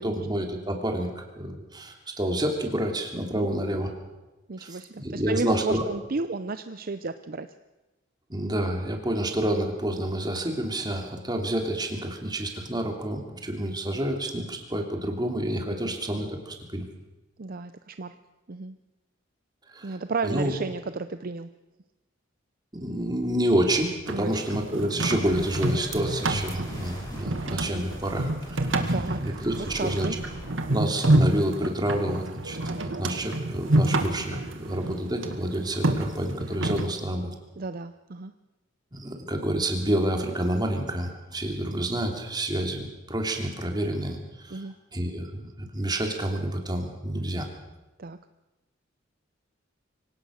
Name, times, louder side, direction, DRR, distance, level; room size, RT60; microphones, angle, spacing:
voice 1, 0.0-3.9 4.6-5.9 8.3-16.8 19.7-19.9 20.2-20.5 22.7-28.6 28.8-28.9 29.2-30.1 30.7-37.3 38.9-44.6 44.9-47.5, right 1 dB, 20° right, 3 dB, 3.0 m, -29 dB
voice 2, 3.3-3.9 4.5-7.5 15.7-16.0 17.4-18.1 18.5-18.8 19.8-21.5 24.1-24.5 28.9-30.2 37.6-38.3 44.5-44.7 48.0-48.2, right 3 dB, 50° right, 11 dB, 0.6 m, -33 dB
sound 1, 24.1-36.9, right 1 dB, 90° right, 1.9 m, -28 dB
sound 2, 25.2-30.7, equal, 20° left, 5.8 m, -43 dB
24.5 x 17.5 x 6.5 m, 1.1 s
head